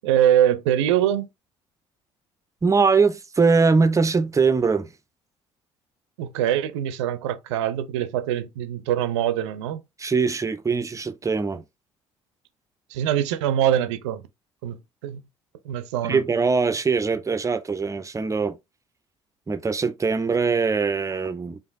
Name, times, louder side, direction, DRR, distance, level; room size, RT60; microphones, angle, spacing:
voice 1, 0.0-1.3 6.2-9.8 12.9-14.2 14.6-14.8 15.0-15.2 15.6-16.2, right 11 dB, 75° right, 0.5 m, -23 dB
voice 2, 2.6-4.9 10.0-11.6 16.1-18.6 19.5-21.6, right 4 dB, 20° right, 0.6 m, -22 dB
4.9 x 2.5 x 2.6 m
figure-of-eight pair, 50°, 15 cm